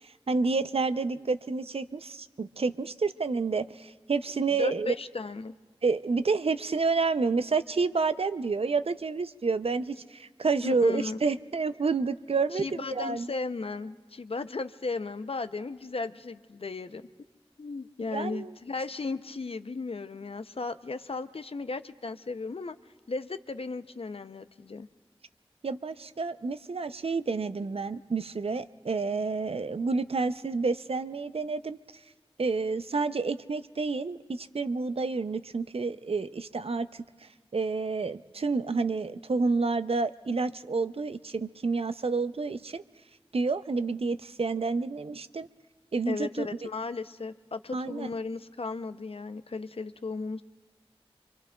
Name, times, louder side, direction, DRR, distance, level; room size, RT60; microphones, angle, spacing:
voice 1, 0.3-4.9 5.8-13.3 18.1-18.5 25.6-31.8 32.4-37.0 37.5-42.8 43.3-45.5 45.9-46.5 47.7-48.1, right 4 dB, 75° right, 12 dB, 0.4 m, -29 dB
voice 2, 4.5-5.5 10.6-11.2 12.5-17.0 17.6-22.8 23.1-24.9 46.1-50.4, left 3 dB, 70° left, 12 dB, 0.5 m, -35 dB
25.5 x 25.0 x 2.3 m, 1.3 s
wide cardioid pair, 55°, 10 cm